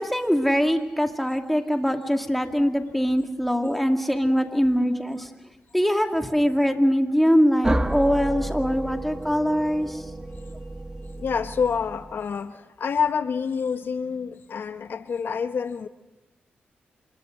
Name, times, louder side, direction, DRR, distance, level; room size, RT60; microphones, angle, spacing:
voice 1, 0.0-5.3 5.7-10.0, equal, 5° left, 4 dB, 2.3 m, -22 dB
sound 1, 7.6-12.3, right 1 dB, 15° right, 1.0 m, -31 dB
voice 2, 11.2-15.9, left 6 dB, 65° left, 10 dB, 0.8 m, -27 dB
26.5 x 21.0 x 6.4 m, 1.1 s
cardioid pair, 65°, 4 cm